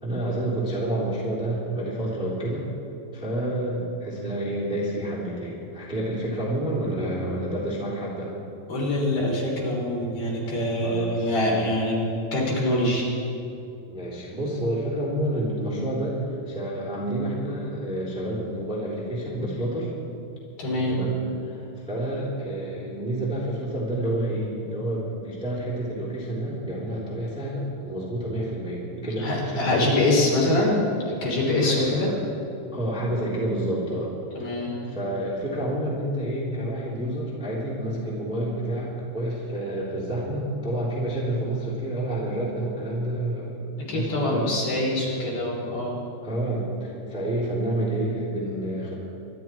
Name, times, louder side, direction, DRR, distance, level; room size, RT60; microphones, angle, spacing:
voice 1, 0.0-2.7 3.1-8.3 10.8-11.2 13.9-19.9 20.9-21.2 21.4-30.2 31.5-32.0 32.7-34.1 34.9-44.6 46.2-48.9, right 1 dB, ahead, -7 dB, 2.7 m, -29 dB
voice 2, 8.7-12.0 12.3-13.1 20.6-21.0 29.2-32.1 34.3-34.8 43.8-46.0, left 1 dB, 55° left, -4 dB, 5.0 m, -24 dB
24.5 x 12.0 x 4.6 m, 2.7 s
omnidirectional pair, 4.8 m